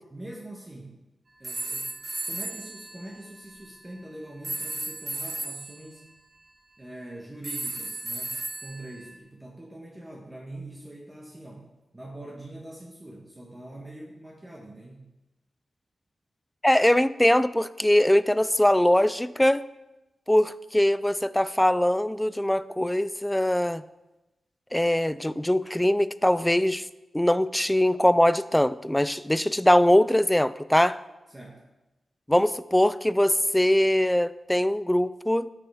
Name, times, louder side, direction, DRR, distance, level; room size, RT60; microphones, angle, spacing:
voice 1, 0.1-1.0 1.4-2.0 2.3-6.1 6.8-11.7 11.9-15.1 31.3-31.6, right 1 dB, 15° right, -2 dB, 1.3 m, -43 dB
sound 1, 1.4-3.7 4.4-5.9 7.4-9.2, right 2 dB, 40° right, 1.0 m, -35 dB
voice 2, 16.6-19.6 20.3-23.8 24.7-26.9 27.1-31.0 32.3-35.5, left 1 dB, 5° left, 16 dB, 0.3 m, -22 dB
13.0 x 6.6 x 3.5 m, 1.0 s
wide cardioid pair, 110°, 0 cm